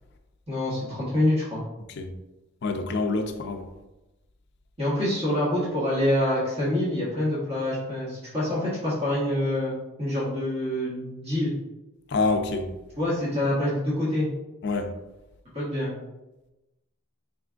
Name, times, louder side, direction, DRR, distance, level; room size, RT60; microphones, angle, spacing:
voice 1, 0.5-1.6 4.8-11.5 13.0-14.3 15.5-15.9, left 1 dB, 25° right, 1.2 m, -26 dB
voice 2, 2.6-3.7 12.1-12.7 14.6-15.0, left 3 dB, 50° left, 0.4 m, -26 dB
5.0 x 3.5 x 2.4 m
head